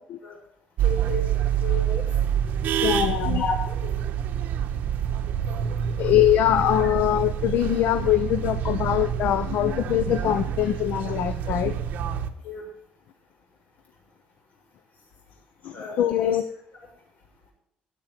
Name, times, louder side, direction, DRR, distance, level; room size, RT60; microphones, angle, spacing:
voice 1, 0.8-2.1 3.3-3.5 3.8-4.0 12.4-12.7 15.7-16.4, left 4 dB, 50° left, 0 dB, 7.1 m, -32 dB
sound 1, 0.8-12.3, right 9 dB, 65° right, 1.1 m, -27 dB
voice 2, 2.8-3.4 6.0-11.7 15.6-16.4, left 12 dB, 65° left, 12 dB, 0.7 m, -23 dB
15.0 x 8.5 x 5.9 m, 0.75 s
cardioid pair, 150°, 3 cm